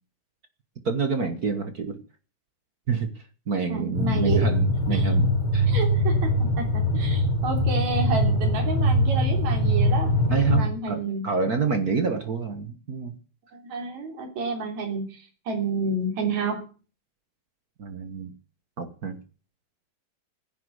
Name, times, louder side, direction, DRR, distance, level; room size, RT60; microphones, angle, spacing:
voice 1, 0.8-2.0 2.9-3.1 3.5-5.7 10.3-13.1 17.8-18.3 18.8-19.2, right 5 dB, 45° right, 8 dB, 1.3 m, -27 dB
voice 2, 3.7-4.5 4.9-5.1 5.7-10.1 10.5-11.2 13.5-16.7, right 4 dB, 70° right, 4 dB, 4.5 m, -30 dB
sound 1, 3.9-10.7, equal, 60° left, 5.0 m, -22 dB
14.5 x 10.5 x 8.1 m, 0.38 s
omnidirectional pair, 3.4 m